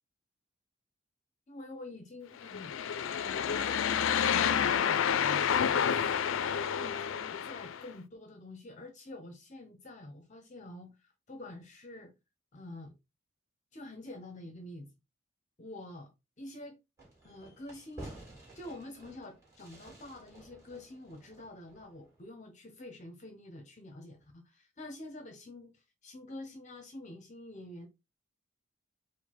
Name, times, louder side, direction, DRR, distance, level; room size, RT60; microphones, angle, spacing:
voice 1, 1.5-2.7 3.2-5.4 5.9-12.1 12.5-12.9 13.7-14.9 15.6-16.1 16.4-16.8 17.2-18.2 18.5-27.9, left 2 dB, 35° left, 0.6 m, -47 dB
sound 1, 2.4-7.8, left 8 dB, 70° left, 0.4 m, -29 dB
Fireworks, 17.0-22.2, right 1 dB, 15° right, 2.3 m, -52 dB
4.8 x 2.1 x 4.1 m
head